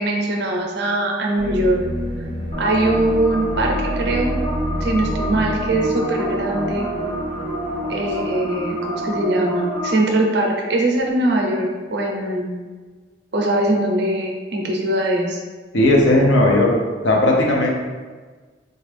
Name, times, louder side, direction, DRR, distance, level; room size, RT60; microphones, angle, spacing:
voice 1, 0.0-1.8 2.6-4.4 4.8-6.8 7.9-12.5 13.3-15.4, right 1 dB, 60° right, 0 dB, 0.5 m, -21 dB
sound 1, 1.4-9.2, equal, 20° right, 0.6 m, -29 dB
sound 2, 2.5-9.9, right 1 dB, 30° left, 0.9 m, -27 dB
voice 2, 15.7-16.8 17.0-17.7, left 1 dB, 75° left, -1 dB, 0.6 m, -15 dB
3.8 x 2.4 x 3.3 m, 1.4 s
head